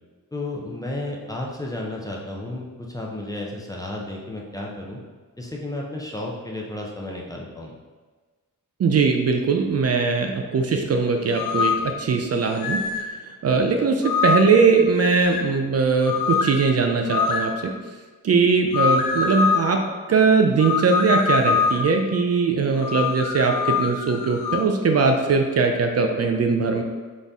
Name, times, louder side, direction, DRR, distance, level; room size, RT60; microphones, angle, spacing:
voice 1, 0.3-5.0 5.4-7.7, left 1 dB, 10° left, -2 dB, 0.5 m, -32 dB
voice 2, 8.8-12.8 13.4-17.7 18.2-19.8 20.1-26.8, right 4 dB, 50° right, 4 dB, 0.4 m, -20 dB
sound 1, 11.3-11.9 12.6-13.1 14.0-14.6 15.0-15.5 16.0-16.6 17.1-17.5 18.7-19.7 20.6-21.9 22.8-24.7, left 5 dB, 75° left, 0.6 m, -24 dB
4.1 x 3.8 x 3.5 m, 1.4 s
wide cardioid pair, 165°, 34 cm